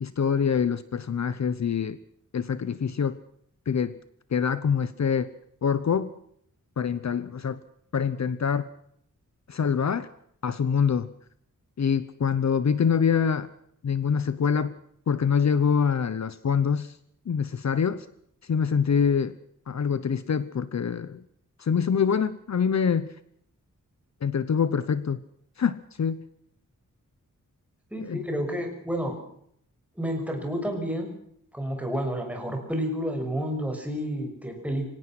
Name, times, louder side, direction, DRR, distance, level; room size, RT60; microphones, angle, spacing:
voice 1, 0.0-2.0 2.3-3.2 3.7-4.0 4.3-5.3 5.6-6.1 6.8-7.6 7.9-8.7 9.5-10.1 10.4-11.1 11.8-13.5 13.8-14.7 15.1-16.9 17.3-18.1 18.5-19.3 19.7-21.2 21.6-23.1 24.2-25.2 25.6-26.3 28.0-28.2, left 6 dB, 55° left, 14 dB, 1.0 m, -25 dB
voice 2, 27.9-29.2 30.0-31.1 31.5-34.9, equal, 5° right, 3 dB, 6.3 m, -30 dB
25.5 x 18.0 x 6.0 m, 0.69 s
wide cardioid pair, 150°, 32 cm